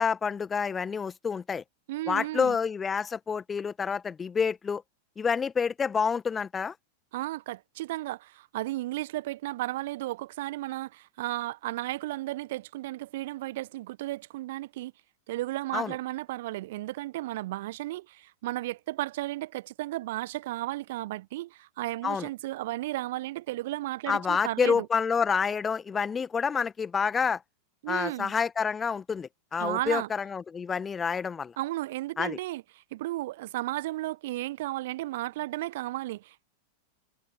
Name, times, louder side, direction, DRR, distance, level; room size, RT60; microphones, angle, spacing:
voice 1, 0.0-1.6 2.1-4.8 5.2-6.7 15.7-15.9 22.0-22.3 24.1-27.4 27.9-31.5 32.2-32.4, left 6 dB, 20° left, 1.5 m, -28 dB
voice 2, 1.9-2.6 7.1-14.9 15.3-24.9 27.8-28.3 29.6-30.1 31.6-32.6 32.9-36.4, right 17 dB, 55° right, 1.1 m, -34 dB
figure-of-eight pair, 90°, 0 cm